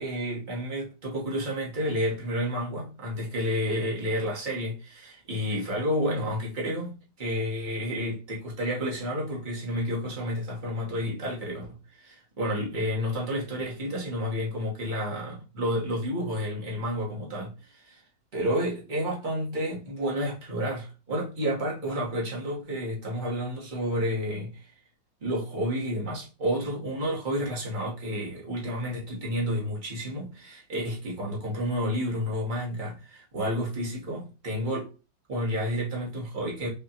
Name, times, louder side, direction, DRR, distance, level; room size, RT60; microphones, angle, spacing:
voice 1, 0.0-18.0 18.3-24.7 25.2-34.9 35.3-36.7, equal, 30° right, 1.1 m, -30 dB
5.5 x 2.3 x 2.8 m
omnidirectional pair, 2.0 m